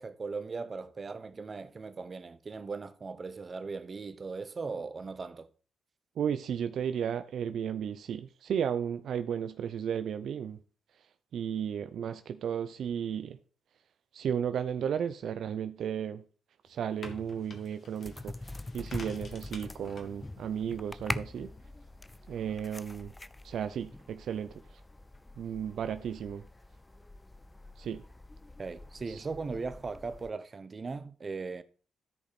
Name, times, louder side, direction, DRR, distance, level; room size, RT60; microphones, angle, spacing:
voice 1, 0.0-5.5 28.6-31.6, right 4 dB, 35° right, 0.9 m, -38 dB
voice 2, 6.2-10.6 11.3-13.4 14.1-16.2 16.7-18.3 18.7-21.5 22.3-23.1 23.4-24.5 25.4-26.4 27.8-28.0 29.1-29.2, right 8 dB, 70° right, 0.6 m, -34 dB
sound 1, 16.7-22.9, left 3 dB, 50° left, 2.1 m, -51 dB
sound 2, 18.0-30.3, left 2 dB, 15° left, 0.5 m, -44 dB
13.0 x 5.2 x 4.2 m
cardioid pair, 75°, 0 cm